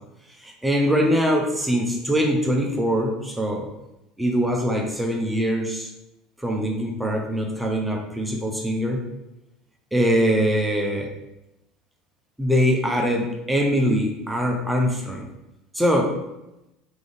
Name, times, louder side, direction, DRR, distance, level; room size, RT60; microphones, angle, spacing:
voice 1, 0.4-3.7 4.2-5.9 6.4-9.0 9.9-11.1 12.4-15.2 15.7-16.1, equal, 5° right, 0 dB, 0.7 m, -22 dB
3.8 x 3.4 x 3.5 m, 0.92 s
figure-of-eight pair, 70°, 0 cm